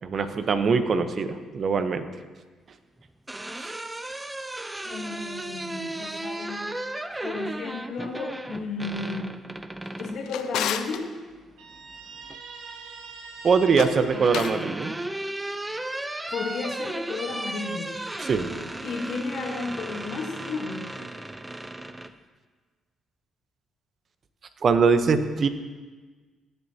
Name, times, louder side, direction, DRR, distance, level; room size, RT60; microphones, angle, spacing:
voice 1, 0.0-2.0 3.6-3.7 13.4-14.9 18.2-18.5 24.6-25.5, right 5 dB, 55° right, 10 dB, 0.8 m, -22 dB
sound 1, 3.0-10.2 11.7-12.4 13.6-22.1, right 1 dB, 15° right, 0.6 m, -35 dB
voice 2, 4.8-6.6 7.2-9.3 10.0-11.1 16.3-17.9 18.8-20.9, left 4 dB, 70° left, 2 dB, 1.3 m, -33 dB
Drawer open or close, 9.8-11.0 13.6-14.6, left 10 dB, 85° left, 0.5 m, -32 dB
Guitar, 11.6-15.2, right 4 dB, 90° right, 1.2 m, -44 dB
16.5 x 8.0 x 2.8 m, 1.4 s
supercardioid pair, 70°, 0 cm